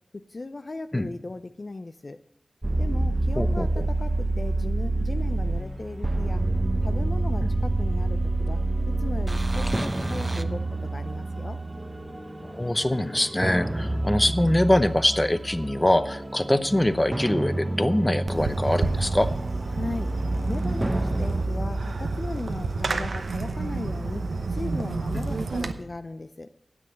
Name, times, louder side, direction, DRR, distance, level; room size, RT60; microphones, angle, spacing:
voice 1, 0.1-2.2 2.8-6.4 6.8-8.6 8.9-11.6 19.7-20.1 20.5-26.5, left 2 dB, 50° left, 10 dB, 0.5 m, -37 dB
sound 1, 2.6-21.5, right 2 dB, 25° right, 0.7 m, -28 dB
voice 2, 3.3-3.9 7.4-7.5 12.4-19.3 25.1-25.2, left 1 dB, 20° left, 13 dB, 0.8 m, -24 dB
sound 2, 11.8-13.8 15.8-17.8, left 2 dB, 70° left, 0.9 m, -47 dB
Fireworks, 18.3-25.7, right 3 dB, 85° right, 0.8 m, -29 dB
9.6 x 7.7 x 8.6 m, 0.80 s
wide cardioid pair, 55°, 0 cm